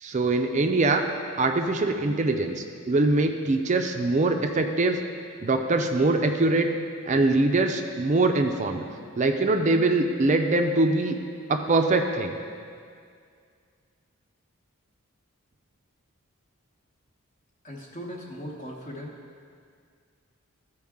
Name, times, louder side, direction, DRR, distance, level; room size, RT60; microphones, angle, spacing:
voice 1, 0.0-1.0 1.4-5.0 5.4-6.7 7.1-8.8 9.2-11.2 11.5-12.3, right 2 dB, 35° right, 5 dB, 0.4 m, -23 dB
voice 2, 17.6-19.1, equal, 40° left, -3 dB, 1.0 m, -38 dB
13.5 x 4.6 x 3.6 m, 2.2 s
head